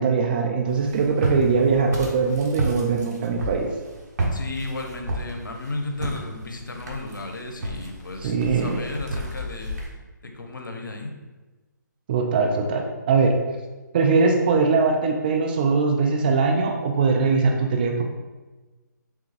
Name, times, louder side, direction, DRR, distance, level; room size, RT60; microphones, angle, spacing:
voice 1, 0.0-3.7 8.2-8.8 12.1-13.4 13.9-18.0, right 4 dB, 30° right, 2 dB, 0.4 m, -21 dB
Walk footsteps, 0.7-9.9, right 1 dB, 55° right, 1.0 m, -32 dB
voice 2, 4.3-9.8 10.3-11.1, left 2 dB, 80° left, 3 dB, 0.7 m, -34 dB
3.4 x 3.4 x 3.3 m, 1.2 s
figure-of-eight pair, 150°, 10 cm